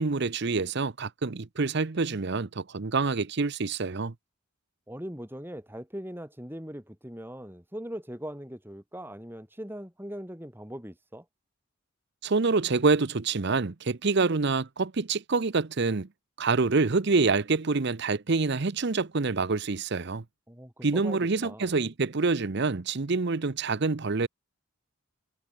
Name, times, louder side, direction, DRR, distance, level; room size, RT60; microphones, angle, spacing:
voice 1, 0.0-4.1 12.2-16.1 16.4-20.2 20.8-24.3, right 4 dB, 55° right, 0.7 m, -26 dB
voice 2, 4.9-11.3 20.5-21.7, equal, 10° right, 4.1 m, -40 dB
head